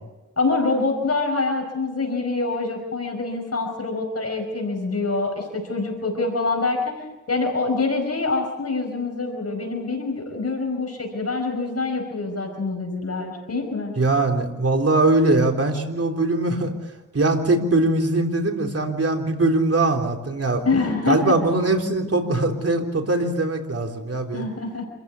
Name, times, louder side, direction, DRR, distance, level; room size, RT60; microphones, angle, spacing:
voice 1, 0.4-6.9 7.3-13.9 20.6-21.2 24.3-24.8, left 3 dB, 55° left, 3 dB, 5.0 m, -25 dB
voice 2, 14.0-16.7 17.1-20.6 21.1-24.5, right 2 dB, 50° right, 2 dB, 3.7 m, -21 dB
27.5 x 15.0 x 8.4 m, 1.1 s
wide cardioid pair, 80°, 30 cm